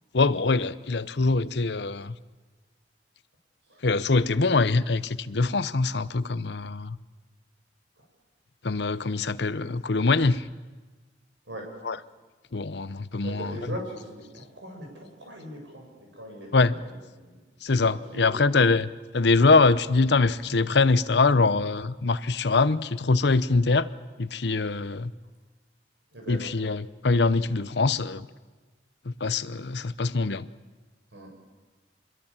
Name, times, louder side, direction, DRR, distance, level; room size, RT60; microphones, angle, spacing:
voice 1, 0.1-2.2 3.8-7.0 8.6-10.5 11.8-12.0 12.5-13.8 16.5-16.7 17.6-23.9 24.2-25.1 26.3-28.3 29.0-30.5, left 3 dB, 65° left, 0.8 m, -23 dB
voice 2, 13.2-17.4 17.8-18.4 26.1-26.5 31.1-31.3, right 1 dB, 80° right, 7.8 m, -40 dB
26.5 x 22.0 x 7.4 m
head